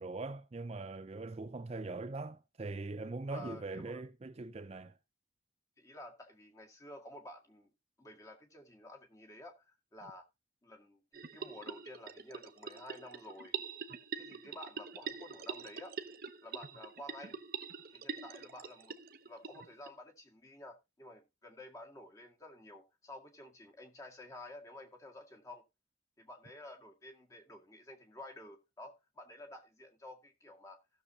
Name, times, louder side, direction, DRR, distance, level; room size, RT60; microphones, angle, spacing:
voice 1, 0.0-4.9, right 3 dB, 35° right, 0.5 m, -41 dB
voice 2, 3.3-4.0 5.8-7.7 8.0-10.3 10.6-13.5 14.1-16.0 16.4-17.4 17.9-19.0 19.3-25.6 26.2-30.8, left 1 dB, 20° left, 1.9 m, -51 dB
sound 1, 11.1-19.9, right 6 dB, 55° right, 0.8 m, -44 dB
16.0 x 6.8 x 2.8 m
head